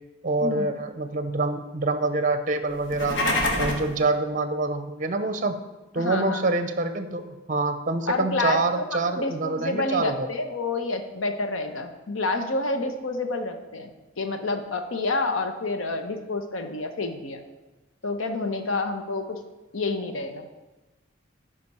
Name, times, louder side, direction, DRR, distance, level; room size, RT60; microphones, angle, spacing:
voice 1, 0.2-3.3 3.6-5.6 5.9-10.3, right 3 dB, 40° right, 9 dB, 0.5 m, -26 dB
sound 1, 2.8-3.9, left 1 dB, 65° left, 1.2 m, -25 dB
voice 2, 6.0-6.4 8.1-13.9 14.2-17.4 18.0-19.4 19.7-20.5, left 3 dB, 80° left, 6 dB, 0.9 m, -28 dB
11.5 x 5.0 x 4.2 m, 1.1 s
head